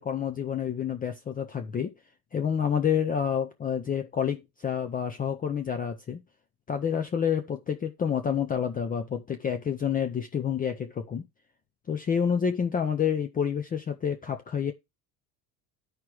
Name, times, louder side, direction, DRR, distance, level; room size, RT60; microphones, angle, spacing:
voice 1, 0.0-1.9 2.3-6.2 6.7-11.2 11.9-14.7, left 7 dB, 20° left, 0.6 m, -28 dB
12.5 x 4.9 x 3.0 m
cardioid pair, 130°, 41 cm